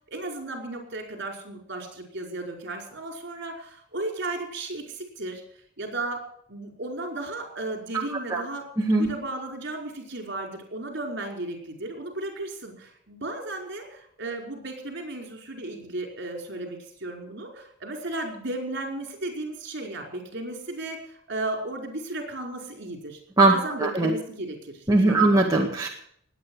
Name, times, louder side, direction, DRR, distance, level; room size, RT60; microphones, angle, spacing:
voice 1, 0.1-5.4 5.8-6.2 6.5-8.6 9.0-23.2 23.5-25.4, right 2 dB, 55° right, 2 dB, 5.0 m, -34 dB
voice 2, 8.8-9.1 23.4-23.5 23.8-24.1 24.9-25.9, right 2 dB, 15° right, -2 dB, 2.0 m, -20 dB
20.0 x 9.3 x 6.4 m, 0.65 s
head